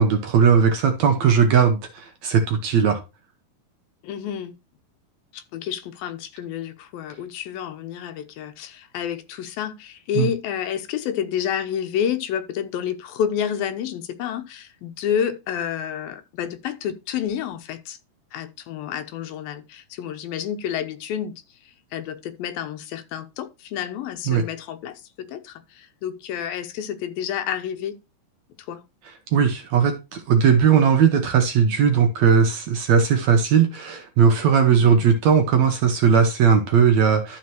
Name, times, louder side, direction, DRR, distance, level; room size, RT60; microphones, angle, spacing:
voice 1, 0.0-3.0 10.2-10.3 24.3-24.4 29.3-37.4, right 6 dB, 65° right, 1.9 m, -18 dB
voice 2, 4.0-4.5 5.3-18.0 18.3-21.3 21.9-28.0 28.7-28.8 34.7-35.0, left 9 dB, 80° left, 2.8 m, -29 dB
12.5 x 4.2 x 4.5 m
omnidirectional pair, 4.1 m